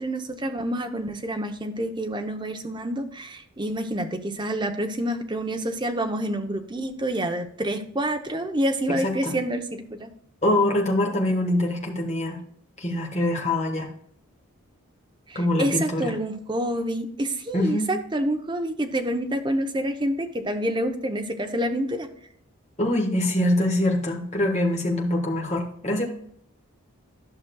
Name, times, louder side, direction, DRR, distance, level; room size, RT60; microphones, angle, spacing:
voice 1, 0.0-10.1 15.3-22.1, right 1 dB, 20° right, 6 dB, 0.7 m, -28 dB
voice 2, 9.0-9.4 10.4-12.4 12.8-13.9 15.3-16.1 17.5-17.9 22.8-26.0, left 1 dB, 30° left, 0 dB, 1.4 m, -24 dB
11.5 x 6.1 x 2.3 m, 0.66 s
head